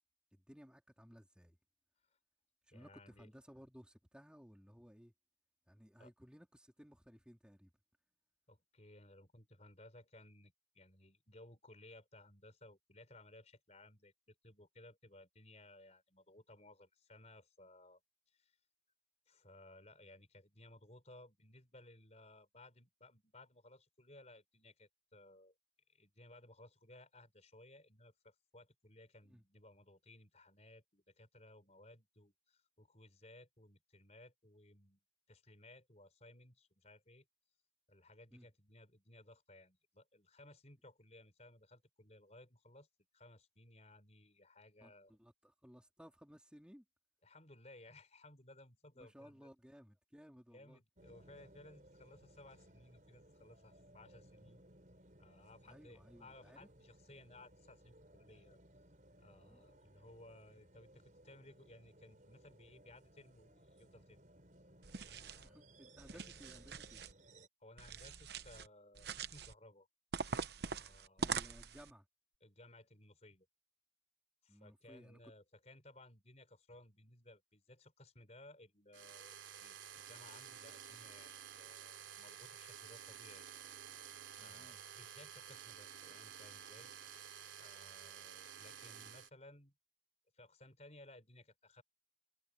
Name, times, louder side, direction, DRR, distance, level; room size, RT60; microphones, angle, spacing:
voice 1, 0.3-1.6 2.7-5.1 5.7-7.7 29.3-29.4 38.3-38.5 44.8-46.8 49.0-50.8 55.6-56.7 59.5-59.6 65.3-67.0 71.2-72.0 74.5-75.2 84.4-84.8, equal, 5° right, 3.4 m, -59 dB
voice 2, 2.7-3.3 6.0-6.1 8.5-18.0 18.3-18.6 19.3-25.5 25.9-35.0 35.3-37.3 37.9-42.9 43.1-45.1 47.2-49.5 50.5-54.6 55.2-58.6 59.2-64.2 65.0-65.6 67.6-69.9 70.6-71.5 72.4-73.5 74.4-83.5 84.4-86.9 87.6-89.7 90.3-91.8, left 1 dB, 35° left, 5.2 m, -60 dB
sound 1, 51.0-67.5, right 1 dB, 40° right, 4.9 m, -63 dB
sound 2, 64.8-65.5 66.0-67.1 67.8-68.7 69.0-69.5 70.1-71.9, right 5 dB, 60° right, 0.9 m, -43 dB
sound 3, 78.9-89.3, right 9 dB, 85° right, 3.3 m, -52 dB
head